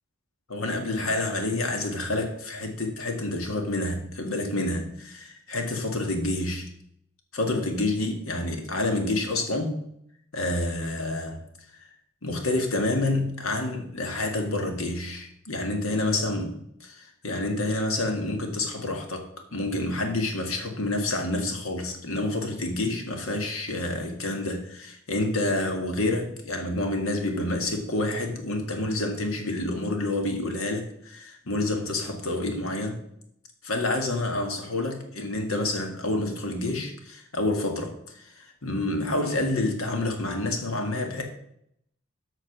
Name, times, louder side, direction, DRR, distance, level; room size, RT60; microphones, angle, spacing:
voice 1, 0.5-6.7 7.3-9.8 10.3-11.5 12.2-16.5 17.2-33.0 33.6-41.2, left 2 dB, 90° left, 1.9 m, -28 dB
8.3 x 5.9 x 6.1 m
head